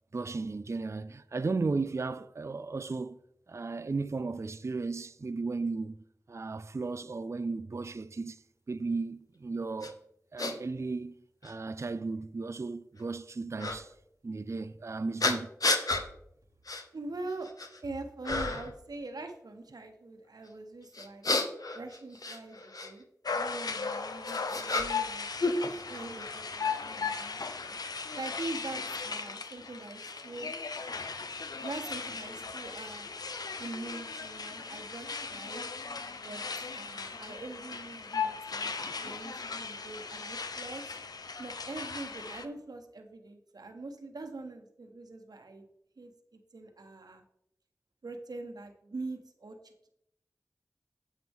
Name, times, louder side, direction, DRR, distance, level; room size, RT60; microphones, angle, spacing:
voice 1, 0.1-3.2 3.5-5.9 6.3-8.4 8.7-10.0 10.3-11.2 11.4-13.9 14.2-15.5, right 3 dB, 45° right, 0.4 m, -35 dB
sound 1, 9.8-9.9 10.4-10.5 11.4-11.5 13.6-13.8 15.2-16.1 16.7-16.8 17.3-17.8 18.2-18.7 20.9-22.9 23.9-25.1 25.4-26.3, left 3 dB, 65° left, 1.0 m, -31 dB
voice 2, 16.9-17.5 17.8-21.2 21.7-23.0 23.3-25.3 25.8-27.8 28.2-30.5 31.6-33.1 33.6-35.7 36.2-36.4 36.7-41.0 41.4-45.6 46.0-46.1 46.5-47.2 48.0-49.9, right 2 dB, 85° right, 1.1 m, -43 dB
sound 2, 23.2-42.4, left 5 dB, 85° left, 0.6 m, -37 dB
9.3 x 7.5 x 3.6 m
cardioid pair, 40°, 7 cm